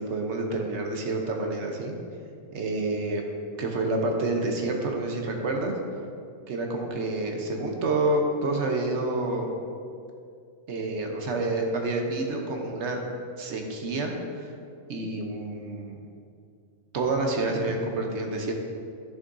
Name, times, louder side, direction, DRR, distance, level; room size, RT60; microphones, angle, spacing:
voice 1, 0.0-1.9 2.5-3.2 3.6-5.7 6.5-9.5 10.7-13.0 13.4-14.5 14.9-16.0 16.9-18.5, right 2 dB, 60° right, 2 dB, 1.1 m, -28 dB
11.0 x 6.4 x 2.6 m, 2.4 s
omnidirectional pair, 1.4 m